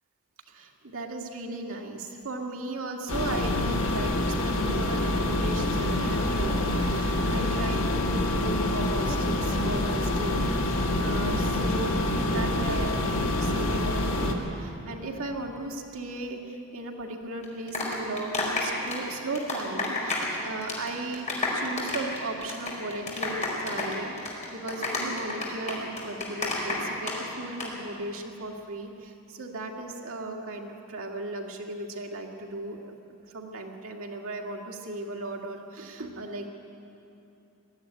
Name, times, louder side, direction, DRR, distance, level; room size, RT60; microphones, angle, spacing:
voice 1, 0.5-21.3 21.5-33.0 33.3-36.5, right 2 dB, 65° right, 1 dB, 2.0 m, -36 dB
sound 1, 3.1-14.3, left 1 dB, 75° left, 2.3 m, -26 dB
sound 2, 17.4-20.4 20.6-20.9 21.1-27.1 27.4-27.7, left 3 dB, 30° left, 4.7 m, -30 dB
20.5 x 14.0 x 9.9 m, 2.9 s
head